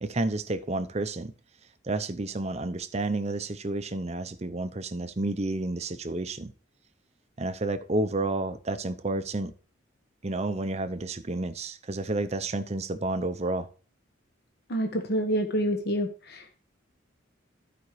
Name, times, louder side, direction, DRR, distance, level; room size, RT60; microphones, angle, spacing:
voice 1, 0.0-1.3 1.8-6.5 7.4-9.5 10.2-13.7, right 2 dB, 30° right, 0.6 m, -30 dB
voice 2, 14.7-16.6, right 1 dB, 50° left, 1.1 m, -28 dB
15.0 x 5.1 x 3.2 m
head